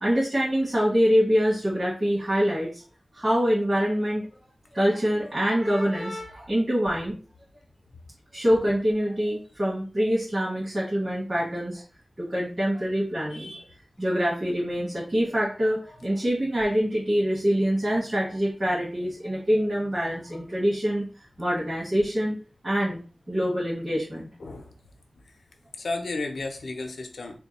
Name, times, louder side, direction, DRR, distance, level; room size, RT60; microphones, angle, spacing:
voice 1, 0.0-2.8 3.1-4.3 4.7-7.2 8.3-11.8 12.2-13.7 14.0-21.1 21.4-22.4 22.6-23.0 23.3-24.3, equal, 35° right, -9 dB, 1.9 m, -25 dB
voice 2, 24.4-24.7 25.8-27.4, left 3 dB, 85° left, 4 dB, 0.7 m, -32 dB
3.6 x 2.3 x 4.1 m, 0.38 s
wide cardioid pair, 70°, 0 cm